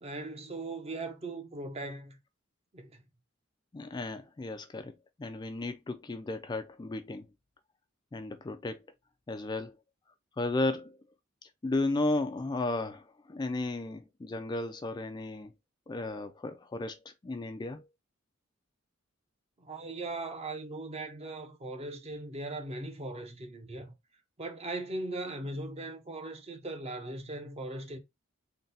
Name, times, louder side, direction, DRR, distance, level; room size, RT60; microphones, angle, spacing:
voice 1, 0.0-2.2 2.7-3.0 19.6-23.9 24.4-28.0, right 2 dB, 30° right, 0.7 m, -39 dB
voice 2, 3.7-4.9 5.2-7.3 8.1-8.9 9.3-9.8 10.4-11.0 11.6-15.5 15.9-17.9, left 2 dB, 20° left, 0.3 m, -34 dB
3.9 x 2.2 x 3.9 m
head